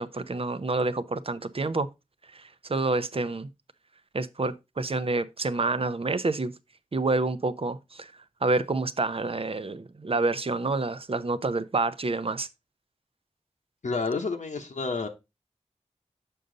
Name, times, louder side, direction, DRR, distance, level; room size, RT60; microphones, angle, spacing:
voice 1, 0.0-1.9 2.3-3.5 4.1-6.5 6.9-8.1 8.4-12.5, right 3 dB, 50° right, 0.6 m, -28 dB
voice 2, 13.8-15.1, left 4 dB, 75° left, 0.9 m, -29 dB
6.6 x 5.4 x 3.8 m
wide cardioid pair, 45°, 13 cm